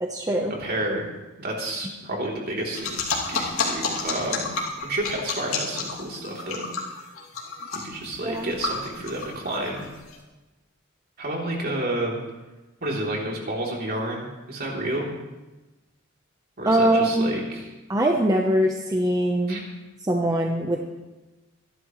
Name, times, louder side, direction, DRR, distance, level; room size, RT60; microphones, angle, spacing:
voice 1, 0.0-0.6 8.2-8.5 16.7-17.4 17.9-19.6 20.0-20.8, right 1 dB, 15° right, 1 dB, 1.0 m, -22 dB
voice 2, 0.6-1.1 1.4-3.0 3.3-4.6 4.8-6.7 7.7-9.9 11.2-12.1 12.8-15.1 16.6-17.7 19.5-19.6, right 1 dB, 45° right, -2 dB, 3.5 m, -30 dB
sound 1, 2.7-10.1, left 4 dB, 85° left, 2.8 m, -30 dB
26.0 x 11.5 x 3.2 m, 1.1 s
head